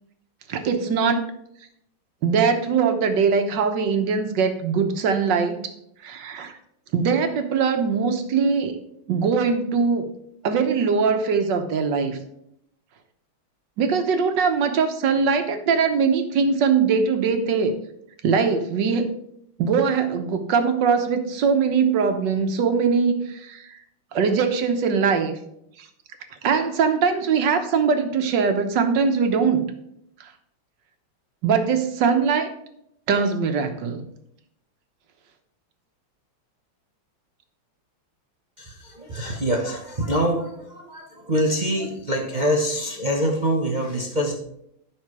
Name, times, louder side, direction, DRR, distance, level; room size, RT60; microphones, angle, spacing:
voice 1, 0.5-1.2 2.2-5.6 6.0-6.6 6.9-8.7 9.1-10.1 10.4-12.2 13.8-17.7 18.2-19.1 19.6-23.7 24.1-25.4 25.8-25.9 26.4-29.6 30.2-30.3 31.4-32.5 33.1-34.0, right 5 dB, 60° right, 7 dB, 1.5 m, -21 dB
voice 2, 38.6-44.4, equal, 40° right, 1 dB, 0.6 m, -25 dB
10.5 x 5.8 x 4.7 m, 0.75 s
omnidirectional pair, 2.4 m